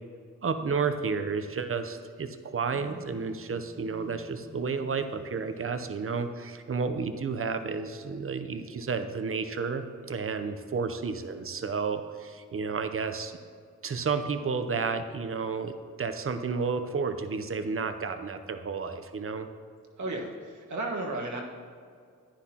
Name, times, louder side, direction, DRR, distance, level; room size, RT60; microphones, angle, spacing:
voice 1, 0.4-13.4 13.8-19.5, right 5 dB, 45° right, 9 dB, 0.8 m, -31 dB
Telephone, 2.6-5.8, left 2 dB, 75° left, 2.2 m, -52 dB
voice 2, 20.0-21.4, right 2 dB, 70° right, 0 dB, 1.5 m, -33 dB
10.0 x 9.8 x 2.9 m, 2.2 s
cardioid pair, 55°, 31 cm